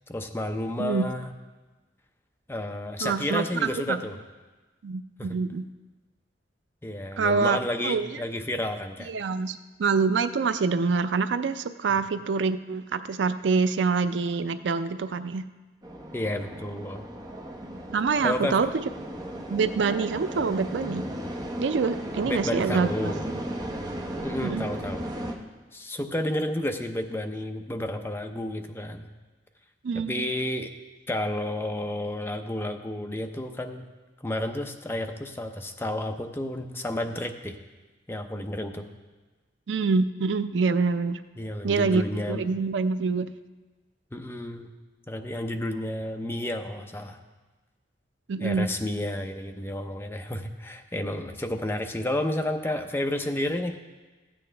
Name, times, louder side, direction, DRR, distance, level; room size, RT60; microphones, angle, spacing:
voice 1, 0.1-1.3 2.5-4.2 5.2-5.4 6.8-9.1 11.9-12.0 16.1-17.1 18.2-18.6 22.3-23.2 24.2-25.1 25.7-29.1 29.9-30.7 31.1-33.9 34.2-37.6 38.1-38.9 41.4-42.5 44.1-44.7 45.1-47.2 48.4-53.8, left 1 dB, 15° left, 5 dB, 0.6 m, -31 dB
voice 2, 3.0-4.0 4.8-5.7 7.2-7.6 7.8-8.2 9.1-15.5 17.9-18.7 19.5-21.1 21.6-23.1 24.4-24.7 29.8-30.3 39.7-41.2 41.6-43.3 48.3-48.7, right 4 dB, 75° right, 11 dB, 0.4 m, -26 dB
sound 1, 15.8-25.3, right 1 dB, 20° right, 0.9 m, -35 dB
14.5 x 8.7 x 3.3 m, 1.2 s
head